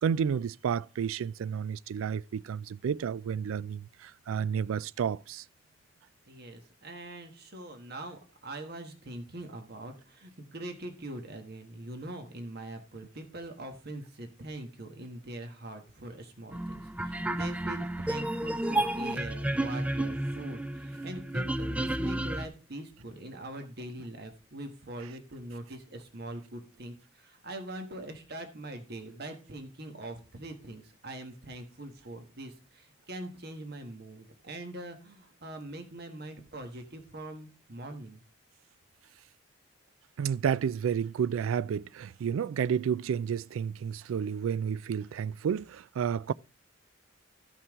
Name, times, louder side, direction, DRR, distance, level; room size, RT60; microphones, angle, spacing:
voice 1, 0.0-5.4 40.2-46.3, right 7 dB, 90° right, 0.3 m, -31 dB
voice 2, 6.3-38.2, right 1 dB, 55° right, 1.4 m, -43 dB
sound 1, 16.5-22.5, right 1 dB, 5° right, 0.3 m, -31 dB
14.0 x 5.7 x 3.6 m
head